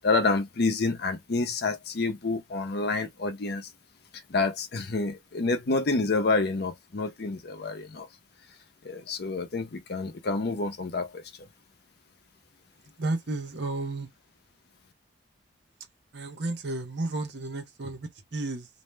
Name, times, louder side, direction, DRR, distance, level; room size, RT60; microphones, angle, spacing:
voice 1, 0.0-3.7 4.3-8.1 8.8-11.5, left 3 dB, 60° left, 0.6 m, -28 dB
voice 2, 13.0-14.1 16.1-18.7, right 2 dB, 65° right, 0.7 m, -32 dB
2.6 x 2.1 x 3.1 m
head